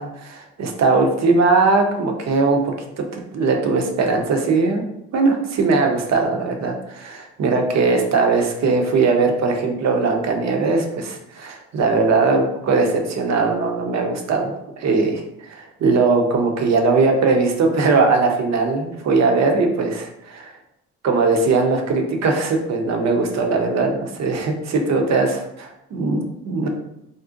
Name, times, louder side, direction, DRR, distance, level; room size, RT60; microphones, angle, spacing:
voice 1, 0.0-2.6 3.0-4.8 5.1-20.5 21.0-26.7, right 3 dB, 50° right, 3 dB, 0.6 m, -20 dB
2.5 x 2.0 x 2.5 m, 0.82 s
supercardioid pair, 60°, 34 cm